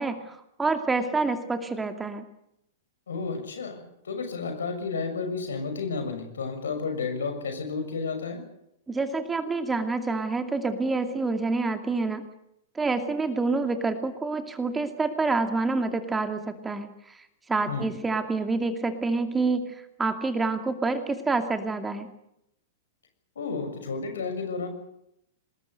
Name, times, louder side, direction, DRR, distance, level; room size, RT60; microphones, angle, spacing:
voice 1, 0.0-2.2 8.9-12.2 12.7-16.9 17.5-22.1, right 3 dB, 10° right, 8 dB, 2.5 m, -27 dB
voice 2, 3.1-8.4 17.7-17.9 23.3-24.7, left 4 dB, 65° left, 7 dB, 6.6 m, -32 dB
26.5 x 20.5 x 8.0 m, 0.79 s
figure-of-eight pair, 100°, 0 cm